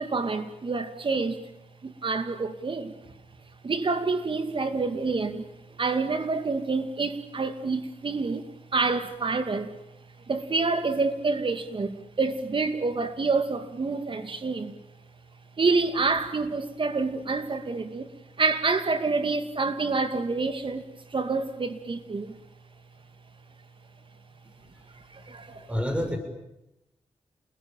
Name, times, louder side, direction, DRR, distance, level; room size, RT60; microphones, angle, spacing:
voice 1, 0.0-1.5 1.8-3.1 3.6-9.8 10.3-14.8 15.6-18.1 18.4-22.4 24.9-25.8, right 4 dB, 45° right, 2.5 m, -28 dB
voice 2, 25.4-26.2, equal, 10° right, 6.9 m, -29 dB
29.0 x 20.5 x 9.1 m
cardioid pair, 75°, 12 cm